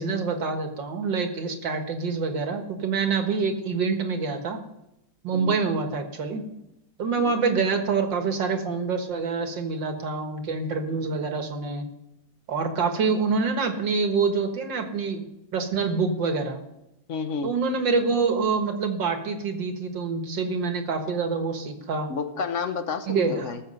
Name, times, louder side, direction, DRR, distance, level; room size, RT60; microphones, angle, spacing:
voice 1, 0.0-4.6 5.2-6.4 7.0-11.9 12.5-16.6 17.4-22.1 23.1-23.5, right 4 dB, 70° right, 5 dB, 2.2 m, -26 dB
voice 2, 17.1-17.5 22.1-23.6, left 5 dB, 50° left, 9 dB, 1.1 m, -31 dB
19.0 x 7.1 x 5.5 m, 0.87 s
omnidirectional pair, 2.1 m